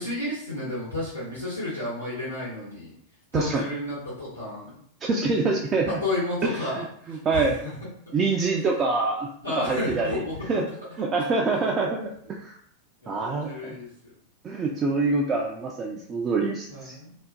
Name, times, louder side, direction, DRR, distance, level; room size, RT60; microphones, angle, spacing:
voice 1, 0.0-2.9 3.3-4.7 6.0-6.8 7.3-7.7 9.4-10.4 13.0-13.9 16.7-17.1, left 2 dB, 85° left, -9 dB, 0.9 m, -31 dB
voice 2, 3.3-3.7 5.0-6.0 6.4-7.6 8.1-9.3 9.6-10.7 11.0-12.1 12.4-12.6 13.1-13.8 14.4-17.0, right 3 dB, 25° right, -1 dB, 0.3 m, -26 dB
2.4 x 2.4 x 2.3 m, 0.64 s
figure-of-eight pair, 90°, 0 cm